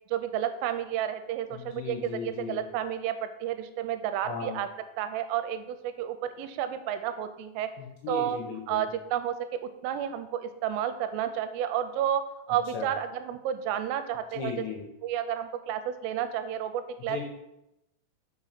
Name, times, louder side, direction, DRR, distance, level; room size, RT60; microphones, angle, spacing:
voice 1, 0.1-4.7 5.0-7.7 8.1-8.4 8.7-12.2 12.5-14.5 15.0-17.2, right 10 dB, 85° right, 10 dB, 3.0 m, -31 dB
voice 2, 1.5-2.6 4.2-4.6 7.8-8.9 12.7-12.9 14.3-14.9 17.1-17.3, left 6 dB, 75° left, 1 dB, 2.6 m, -36 dB
6.3 x 5.0 x 5.7 m, 0.88 s
omnidirectional pair, 5.9 m